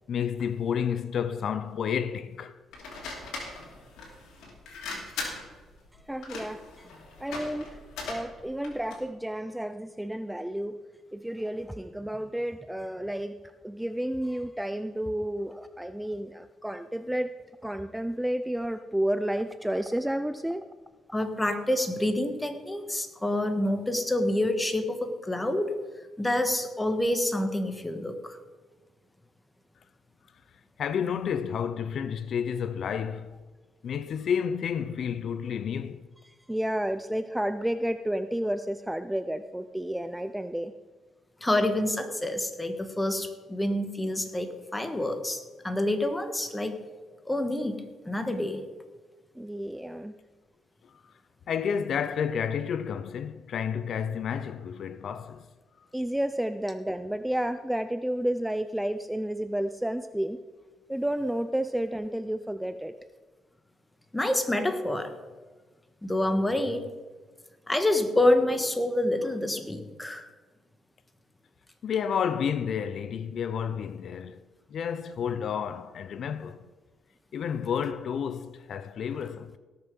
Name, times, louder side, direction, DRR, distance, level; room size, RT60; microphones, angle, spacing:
voice 1, 0.1-2.5 30.8-33.4 33.8-36.0 51.5-55.5 71.8-74.4 74.7-76.6 77.3-79.6, left 7 dB, 60° left, 0.5 m, -30 dB
sound 1, 2.7-9.1, left 3 dB, 85° left, 2.8 m, -40 dB
voice 2, 5.9-6.9 7.2-7.8 8.1-10.8 11.1-13.4 13.6-17.3 17.6-20.6 36.2-40.7 49.4-50.1 55.9-60.4 60.9-62.9, right 1 dB, 5° right, 0.5 m, -31 dB
voice 3, 21.1-25.8 26.2-28.4 41.4-46.8 47.2-48.6 64.1-65.1 66.0-66.8 67.7-70.3, left 1 dB, 10° left, 1.5 m, -27 dB
17.5 x 6.7 x 5.3 m
cardioid pair, 90°, 0 cm